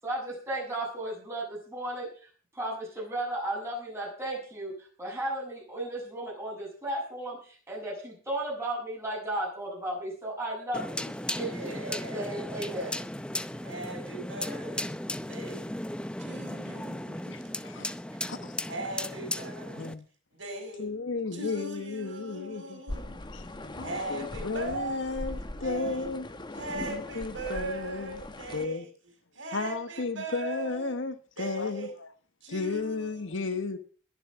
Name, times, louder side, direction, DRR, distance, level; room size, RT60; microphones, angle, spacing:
voice 1, 0.0-2.3 2.5-4.7 5.0-11.1 11.3-13.0, right 1 dB, 15° right, 7.1 m, -35 dB
sound 1, 10.7-19.9, left 1 dB, 5° left, 0.6 m, -36 dB
voice 2, 11.3-12.4 13.6-15.0 15.3-15.7 16.2-17.7 18.6-19.9 20.3-20.9 21.3-23.2 23.8-26.1 26.5-28.9 29.3-30.9 31.4-31.9 32.4-33.6, right 2 dB, 60° right, 5.5 m, -39 dB
voice 3, 17.3-17.9 18.3-18.5 19.8-20.0 20.8-22.8 23.3-23.4 23.8-26.3 26.7-28.2 28.5-28.9 29.5-31.9 32.5-33.8, left 3 dB, 65° left, 1.1 m, -34 dB
sound 2, 22.9-28.7, left 1 dB, 20° left, 1.0 m, -40 dB
21.0 x 7.3 x 6.0 m
head